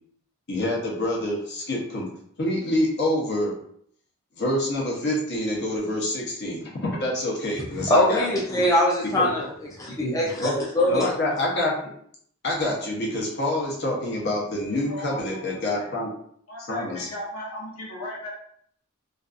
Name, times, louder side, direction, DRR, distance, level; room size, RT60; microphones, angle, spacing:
voice 1, 0.5-2.1 2.4-3.6 4.4-8.3 9.2-9.3 10.0-10.5 10.9-11.9 12.4-16.1 16.7-17.1, left 1 dB, 50° left, -3 dB, 0.7 m, -27 dB
voice 2, 7.8-9.5 9.7-11.1, left 1 dB, 15° left, -4 dB, 0.3 m, -22 dB
voice 3, 14.7-15.9 16.5-18.3, left 1 dB, 80° left, -4 dB, 0.9 m, -37 dB
2.5 x 2.3 x 2.4 m, 0.66 s
head